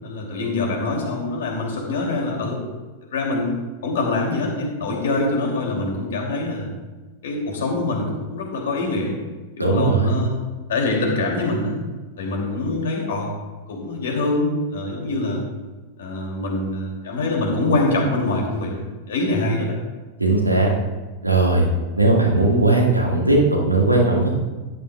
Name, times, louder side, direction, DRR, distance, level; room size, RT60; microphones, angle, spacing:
voice 1, 0.0-2.6 3.1-3.5 3.8-6.7 7.2-9.1 9.6-10.4 10.7-11.8 12.2-13.3 13.7-15.4 16.0-18.7 19.1-19.7, left 2 dB, 60° left, 0 dB, 2.7 m, -24 dB
voice 2, 9.6-10.2 20.2-20.7 21.2-21.7 22.0-24.3, right 2 dB, 85° right, -1 dB, 1.9 m, -18 dB
13.0 x 11.0 x 2.4 m, 1.3 s
figure-of-eight pair, 90°, 0 cm